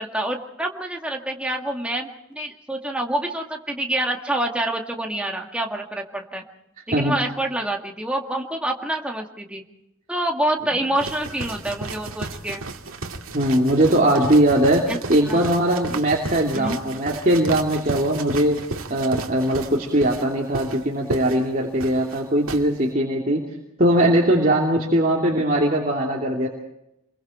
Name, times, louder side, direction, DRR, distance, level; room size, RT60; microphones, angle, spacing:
voice 1, 0.0-6.4 6.9-9.6 10.1-12.6 14.9-15.5 16.5-16.8, right 1 dB, 5° right, 1 dB, 2.0 m, -27 dB
sound 1, 11.0-22.6, right 2 dB, 70° right, 2.3 m, -33 dB
voice 2, 13.3-18.6 18.9-23.4 23.8-26.5, right 1 dB, 35° right, -2 dB, 2.9 m, -20 dB
28.5 x 22.5 x 4.4 m, 0.85 s
head